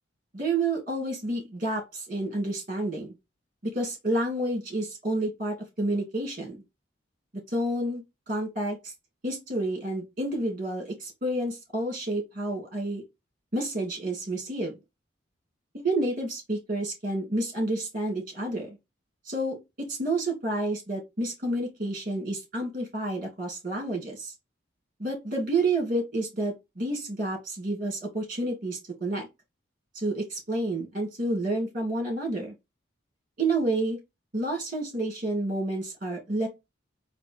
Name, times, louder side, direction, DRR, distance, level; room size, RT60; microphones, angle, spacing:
voice 1, 0.3-3.1 3.6-6.6 7.5-8.9 9.2-13.0 13.5-14.7 15.7-18.8 19.3-19.6 19.9-24.3 25.0-29.3 29.9-32.5 33.4-34.0 34.3-36.5, right 2 dB, 45° right, 2.4 m, -29 dB
4.2 x 2.7 x 4.6 m
head